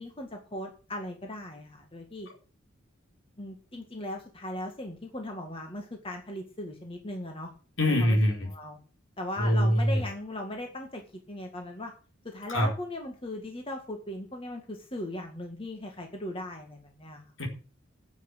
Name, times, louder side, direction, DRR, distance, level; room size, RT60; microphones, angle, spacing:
voice 1, 0.0-2.3 3.4-7.5 7.9-8.2 8.5-8.8 9.2-11.9 12.2-17.2, left 1 dB, 25° left, 2 dB, 1.9 m, -38 dB
voice 2, 7.8-8.5 9.4-10.0 12.5-12.7 17.4-17.5, equal, 65° left, 1 dB, 4.5 m, -24 dB
10.0 x 7.8 x 7.8 m, 0.37 s
head